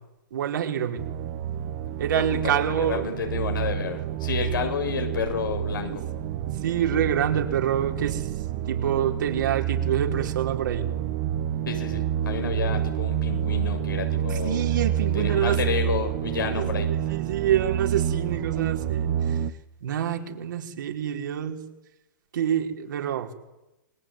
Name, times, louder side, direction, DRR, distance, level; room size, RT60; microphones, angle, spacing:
voice 1, 0.3-1.0 2.0-3.1 5.9-6.0 6.4-8.3 8.7-10.9 14.3-15.6 16.5-19.4 19.8-21.6 22.3-23.3, right 9 dB, 70° right, 2 dB, 4.9 m, -27 dB
sound 1, 1.0-19.5, right 10 dB, 45° right, 1.5 m, -28 dB
voice 2, 2.1-6.0 11.7-14.6 15.1-16.9, left 6 dB, 80° left, 5 dB, 7.0 m, -30 dB
28.0 x 21.0 x 9.4 m, 0.97 s
hypercardioid pair, 125°, 11 cm